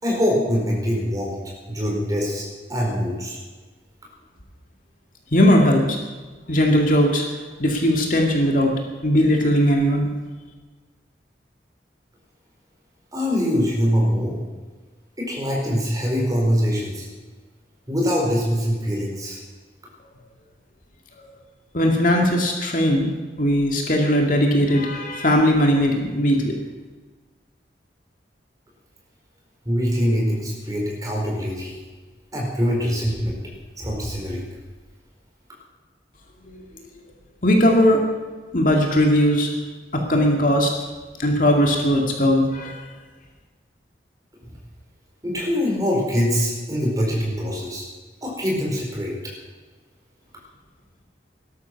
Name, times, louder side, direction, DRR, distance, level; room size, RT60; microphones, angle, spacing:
voice 1, 0.0-1.4 1.7-3.4 13.1-14.3 15.2-17.1 17.9-19.4 29.6-31.7 32.3-33.4 33.8-34.5 44.4-44.6 45.2-47.8 48.2-49.1, equal, 20° right, -2 dB, 4.4 m, -23 dB
voice 2, 5.3-6.0 6.5-7.3 7.6-8.7 9.0-10.1 21.7-23.1 23.4-26.6 37.4-38.0 38.5-39.5 39.9-40.7 41.2-42.8, equal, 45° left, 1 dB, 2.3 m, -18 dB
18.5 x 13.0 x 6.0 m, 1.3 s
head